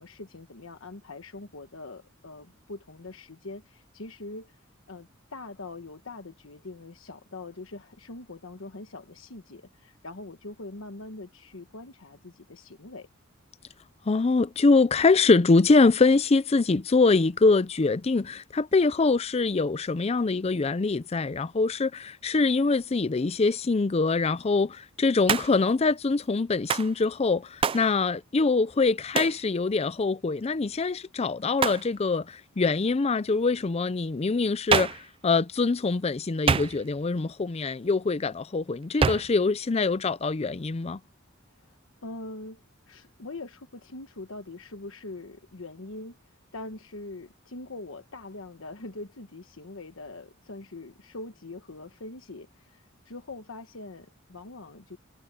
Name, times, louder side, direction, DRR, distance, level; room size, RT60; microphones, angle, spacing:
voice 1, 0.0-4.6 4.9-13.1 41.6-46.2 46.5-55.0, left 2 dB, 80° left, 1.2 m, -43 dB
voice 2, 14.1-41.0, left 3 dB, 30° left, 0.5 m, -24 dB
Hands, 25.3-25.7 26.7-26.9 27.6-27.9 29.2-29.4 31.6-31.9 34.7-35.1 36.5-37.0 39.0-39.4, right 6 dB, 25° right, 0.3 m, -26 dB
head